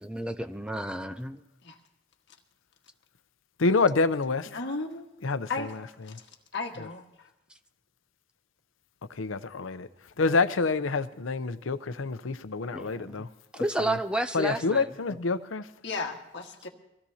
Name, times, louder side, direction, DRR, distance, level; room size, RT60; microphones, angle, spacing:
voice 1, 0.0-1.4 12.7-13.3 13.6-14.8, right 1 dB, 5° right, 9 dB, 0.5 m, -31 dB
voice 2, 3.6-4.5 5.2-5.8 6.1-6.2 6.8-6.9 9.1-9.9 10.2-13.3 13.5-14.0 14.3-15.7, left 4 dB, 85° left, 12 dB, 0.7 m, -27 dB
voice 3, 4.5-5.0 5.5-5.7 6.0-6.2 6.5-7.3 15.8-16.7, left 3 dB, 60° left, 1 dB, 1.6 m, -35 dB
23.0 x 16.0 x 2.8 m, 0.90 s
head